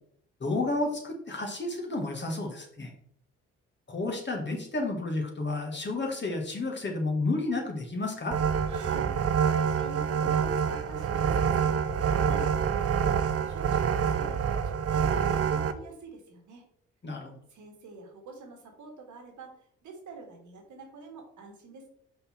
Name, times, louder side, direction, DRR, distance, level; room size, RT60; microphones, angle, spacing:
voice 1, 0.4-2.9 3.9-8.4 17.0-17.4, left 2 dB, 35° left, 1 dB, 1.8 m, -31 dB
sound 1, 8.3-15.7, right 7 dB, 50° right, 0.7 m, -26 dB
voice 2, 8.6-9.1 9.5-13.2 13.4-16.7 17.5-21.9, right 3 dB, 70° right, 2 dB, 1.8 m, -46 dB
5.1 x 4.2 x 4.5 m, 0.67 s
hypercardioid pair, 45°, 31 cm